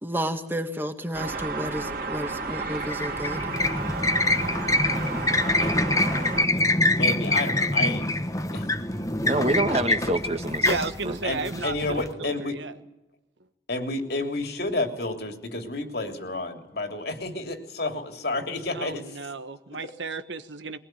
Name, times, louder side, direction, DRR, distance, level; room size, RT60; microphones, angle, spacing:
voice 1, 0.0-3.5, equal, 10° right, 6 dB, 1.8 m, -31 dB
sound 1, 1.1-6.5, right 3 dB, 50° right, 3.0 m, -32 dB
sound 2, 2.8-12.1, left 2 dB, 20° left, 1.3 m, -25 dB
voice 2, 7.0-8.7 11.2-12.6 13.7-19.2 19.7-19.8, left 2 dB, 60° left, 5 dB, 3.2 m, -31 dB
voice 3, 9.2-11.2 11.5-11.6, right 2 dB, 35° right, 6 dB, 1.8 m, -27 dB
voice 4, 10.6-12.7 18.7-20.8, right 3 dB, 90° right, 10 dB, 1.5 m, -33 dB
22.5 x 19.5 x 9.3 m, 0.95 s
head